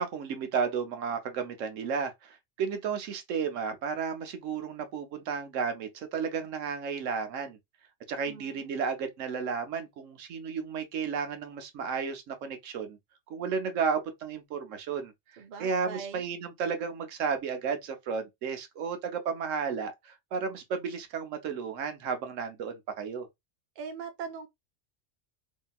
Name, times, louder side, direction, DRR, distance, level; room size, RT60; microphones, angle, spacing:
voice 1, 0.0-7.6 8.1-13.0 13.3-15.1 15.6-23.3, right 6 dB, 85° right, 1.1 m, -33 dB
voice 2, 8.3-8.7 15.4-16.2 23.8-24.5, right 6 dB, 50° right, 0.6 m, -41 dB
2.8 x 2.6 x 2.2 m
omnidirectional pair, 1.3 m